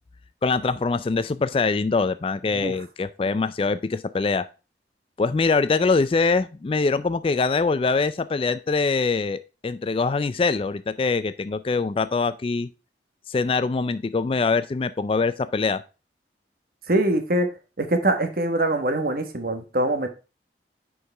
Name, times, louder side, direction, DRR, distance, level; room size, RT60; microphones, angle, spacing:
voice 1, 0.4-4.5 5.2-12.7 13.3-15.8, left 4 dB, 30° left, 14 dB, 0.3 m, -23 dB
voice 2, 16.9-17.5 17.8-20.1, right 1 dB, 50° right, 7 dB, 1.2 m, -23 dB
9.8 x 4.7 x 3.3 m, 0.31 s
head